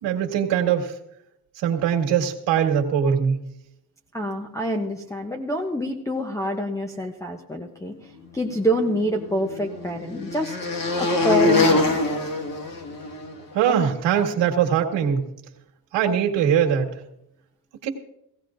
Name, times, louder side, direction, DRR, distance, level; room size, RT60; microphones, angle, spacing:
voice 1, 0.0-0.9 1.6-3.4 13.5-15.2 15.9-16.9 17.8-17.9, right 8 dB, 75° right, 2 dB, 1.9 m, -21 dB
voice 2, 4.1-10.6 11.0-12.0, equal, 5° left, -2 dB, 0.7 m, -27 dB
sound 1, 8.7-13.3, left 2 dB, 50° left, 1.7 m, -24 dB
17.5 x 16.5 x 2.6 m, 0.79 s
cardioid pair, 145°, 43 cm